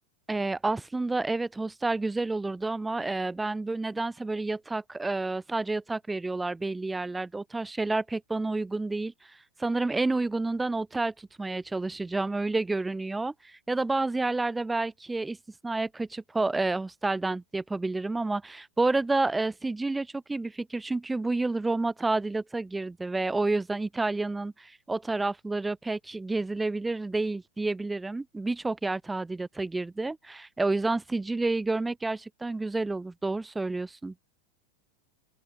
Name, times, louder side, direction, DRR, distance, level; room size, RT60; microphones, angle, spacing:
voice 1, 0.3-15.4 15.6-34.1, right 3 dB, 10° right, 0.5 m, -29 dB
open air
figure-of-eight pair, 90°, 0 cm